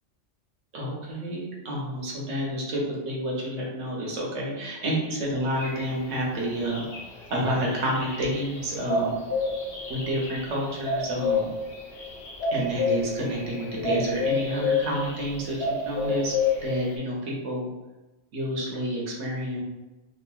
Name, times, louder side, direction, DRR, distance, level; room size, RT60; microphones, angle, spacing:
voice 1, 0.7-6.9 7.3-9.2 9.9-11.5 12.5-15.6 15.8-16.4 16.6-17.7 18.3-19.6, equal, 85° right, -3 dB, 1.1 m, -29 dB
sound 1, 5.6-17.0, left 4 dB, 60° left, 0.8 m, -30 dB
2.9 x 2.5 x 2.3 m, 1.1 s
omnidirectional pair, 1.2 m